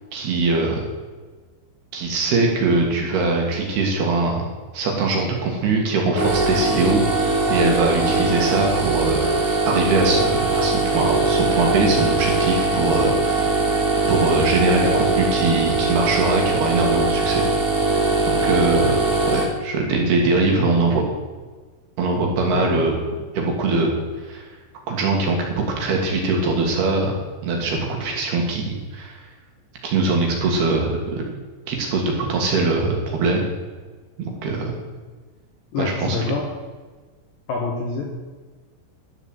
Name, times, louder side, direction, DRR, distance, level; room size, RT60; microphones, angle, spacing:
voice 1, 0.1-0.9 1.9-4.4 4.7-9.3 9.6-13.6 14.1-17.4 18.3-18.9 19.3-21.0 22.0-23.0 23.4-24.4 24.9-27.2 27.4-29.3 29.8-31.2 31.7-33.4 34.2-34.7 35.8-36.2, right 3 dB, 60° right, 1 dB, 3.4 m, -22 dB
sound 1, 6.1-19.4, right 3 dB, 20° right, 0.6 m, -21 dB
voice 2, 35.7-36.5 37.5-38.1, left 4 dB, 65° left, -1 dB, 2.4 m, -26 dB
12.0 x 8.1 x 7.8 m, 1.3 s
omnidirectional pair, 5.8 m